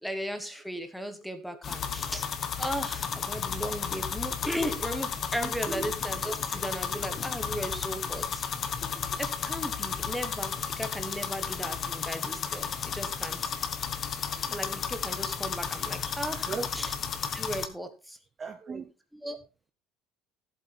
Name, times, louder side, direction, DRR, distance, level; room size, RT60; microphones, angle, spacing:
voice 1, 0.0-2.3 2.6-8.7 9.2-13.5 14.5-16.9 17.3-18.2 19.2-19.4, equal, ahead, 9 dB, 1.3 m, -36 dB
sound 1, 1.6-17.7, left 7 dB, 25° left, 1.2 m, -33 dB
voice 2, 5.4-5.9 16.0-16.2 16.4-16.7 18.4-18.9, right 4 dB, 20° right, 8 dB, 0.8 m, -37 dB
15.0 x 8.0 x 4.2 m, 0.30 s
cardioid pair, 180°, 0 cm